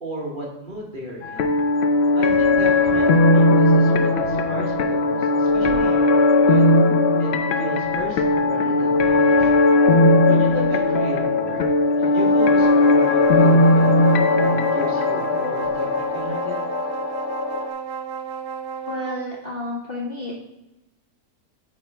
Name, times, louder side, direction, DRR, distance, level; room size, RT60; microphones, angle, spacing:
voice 1, 0.0-1.5 2.1-6.9 7.2-7.3 7.6-9.5 10.2-11.6 12.1-13.9 14.4-15.8 16.1-16.5, right 1 dB, 35° right, -3 dB, 1.3 m, -34 dB
sound 1, 1.2-17.7, left 2 dB, 85° left, 0.5 m, -18 dB
sound 2, 12.0-19.4, right 7 dB, 90° right, 1.2 m, -32 dB
voice 2, 18.9-20.3, left 2 dB, 45° left, -2 dB, 0.9 m, -31 dB
9.2 x 4.4 x 3.3 m, 0.95 s
omnidirectional pair, 1.8 m